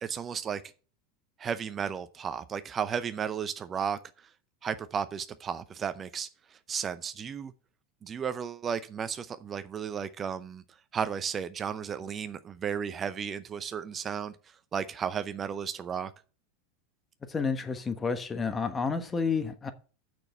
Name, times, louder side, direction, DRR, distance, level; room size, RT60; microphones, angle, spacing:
voice 1, 0.0-0.6 1.4-4.3 4.6-7.5 8.0-10.6 10.9-16.1, right 7 dB, 30° right, 0.6 m, -34 dB
voice 2, 17.3-19.7, left 5 dB, 20° left, 1.3 m, -30 dB
6.7 x 6.1 x 7.0 m
hypercardioid pair, 95°, 0 cm